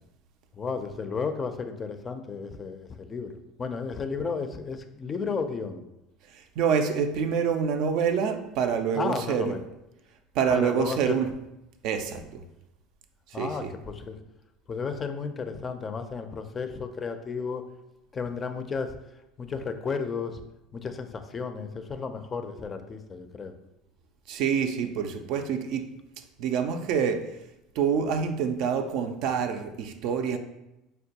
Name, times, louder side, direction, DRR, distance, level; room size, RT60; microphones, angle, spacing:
voice 1, 0.5-3.3 3.6-5.8 8.9-9.6 10.5-11.2 13.3-14.2 14.7-17.6 18.1-18.9 19.4-20.4 20.7-23.5, left 5 dB, 30° left, 8 dB, 0.4 m, -33 dB
voice 2, 6.3-9.6 10.3-11.3 11.8-12.4 13.3-13.7 24.3-25.9 26.4-27.3 27.8-30.4, right 7 dB, 65° right, 7 dB, 0.4 m, -26 dB
4.5 x 2.2 x 2.8 m, 0.91 s
hypercardioid pair, 90°, 0 cm